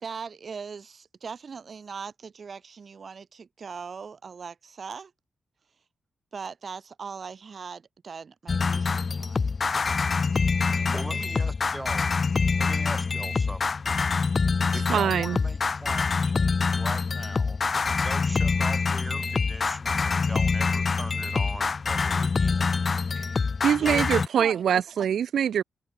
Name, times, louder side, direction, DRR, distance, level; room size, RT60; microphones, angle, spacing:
voice 1, 0.0-5.1 6.3-9.5 10.6-11.4 23.8-24.8, right 5 dB, 50° right, 1.0 m, -40 dB
sound 1, 8.5-24.3, left 4 dB, 40° left, 0.7 m, -25 dB
voice 2, 10.9-12.1 12.6-13.7 14.7-17.6 18.0-22.7, right 1 dB, 10° right, 3.1 m, -40 dB
voice 3, 14.7-15.4 23.1-23.3 23.6-25.6, right 9 dB, 80° right, 0.5 m, -24 dB
cardioid pair, 90°, 0 cm